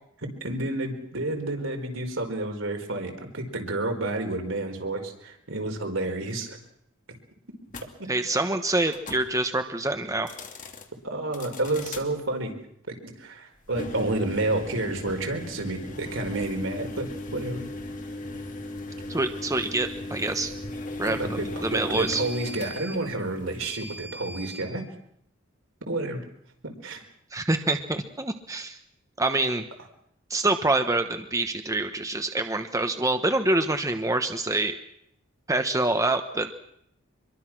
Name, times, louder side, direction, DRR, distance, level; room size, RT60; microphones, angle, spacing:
voice 1, 0.2-6.6 8.0-8.1 11.0-12.5 12.9-17.6 21.0-24.8 25.9-26.2 26.6-27.0, right 2 dB, 80° right, 4 dB, 4.6 m, -30 dB
sound 1, 7.7-7.9 8.9-9.3 10.2-10.9 11.3-12.1 13.7-24.7, left 1 dB, 40° left, 2.9 m, -37 dB
voice 2, 8.1-10.3 19.1-20.5 21.0-22.2 27.3-28.8 29.2-29.6 30.3-34.8 35.5-36.5, right 2 dB, 15° right, 7 dB, 1.2 m, -26 dB
25.5 x 23.0 x 6.2 m, 0.72 s
head